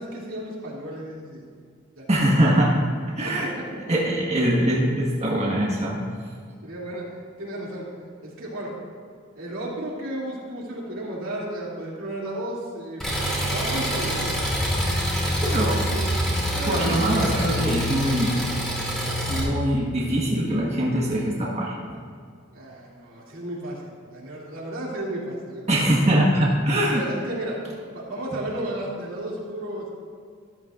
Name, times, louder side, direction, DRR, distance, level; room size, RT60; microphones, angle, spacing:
voice 1, 0.0-1.5 2.0-2.4 3.2-3.8 6.6-7.9 8.2-8.8 9.3-14.4 15.2-16.1 16.5-17.5 22.5-25.7 26.9-27.6 27.9-29.9, right 1 dB, 85° right, -4 dB, 2.7 m, -33 dB
voice 2, 2.1-2.8 3.1-3.5 3.9-6.0 15.4-15.8 16.7-18.3 19.3-21.8 25.7-27.0, right 1 dB, 35° right, -4 dB, 1.5 m, -22 dB
Engine, 13.0-19.4, equal, 5° left, 3.0 m, -25 dB
13.5 x 12.5 x 2.5 m, 2.1 s
head